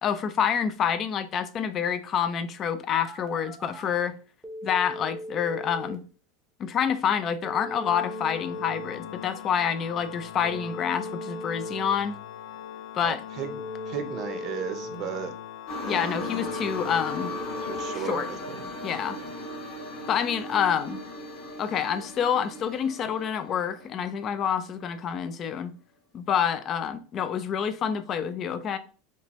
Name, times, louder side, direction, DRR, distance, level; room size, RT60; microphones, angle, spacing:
voice 1, 0.0-4.1 4.6-6.0 6.6-12.1 12.9-13.2 15.8-17.3 17.9-18.3 18.8-19.2 20.1-21.0 21.6-25.7 26.1-28.8, left 8 dB, 30° left, 0.4 m, -27 dB
Telephone, 2.9-3.9 4.4-5.9 7.4-8.9 10.4-11.9 13.4-14.9 16.4-17.9, equal, ahead, 0.8 m, -38 dB
Organ, 7.7-18.6, left 9 dB, 85° left, 0.5 m, -41 dB
voice 2, 13.0-13.6 13.9-15.3 15.8-16.4 17.6-18.7 19.2-19.3, right 7 dB, 40° right, 0.6 m, -35 dB
sound 1, 15.7-24.5 25.1-25.2, left 1 dB, 60° left, 1.5 m, -37 dB
4.3 x 3.0 x 3.0 m
supercardioid pair, 155°, 0 cm